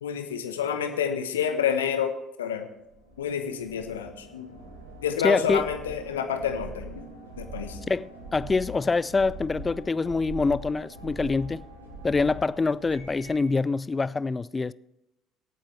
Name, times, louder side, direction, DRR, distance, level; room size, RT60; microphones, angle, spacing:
voice 1, 0.0-2.1 2.4-2.7 3.2-4.5 5.0-7.1 7.4-7.8, left 8 dB, 80° left, 1.0 m, -28 dB
sound 1, 2.9-13.5, right 2 dB, 90° right, 2.1 m, -43 dB
voice 2, 5.2-5.7 7.9-11.6 12.0-14.7, left 4 dB, 25° left, 0.4 m, -25 dB
24.0 x 8.9 x 3.3 m
figure-of-eight pair, 60°, 0 cm